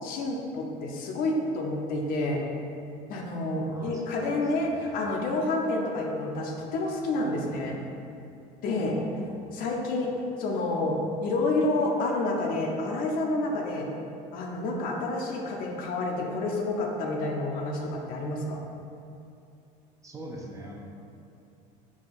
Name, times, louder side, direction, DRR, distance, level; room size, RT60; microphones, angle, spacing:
voice 1, 0.0-2.4 3.1-7.8 8.6-9.0 9.5-10.1 10.4-13.9 14.3-18.6, left 2 dB, 60° left, 0 dB, 0.6 m, -29 dB
voice 2, 3.7-4.3 4.6-5.0 8.8-9.1 9.4-9.5 20.0-20.8, right 1 dB, 20° right, -1 dB, 0.5 m, -43 dB
4.6 x 2.2 x 4.2 m, 2.6 s
supercardioid pair, 105°, 17 cm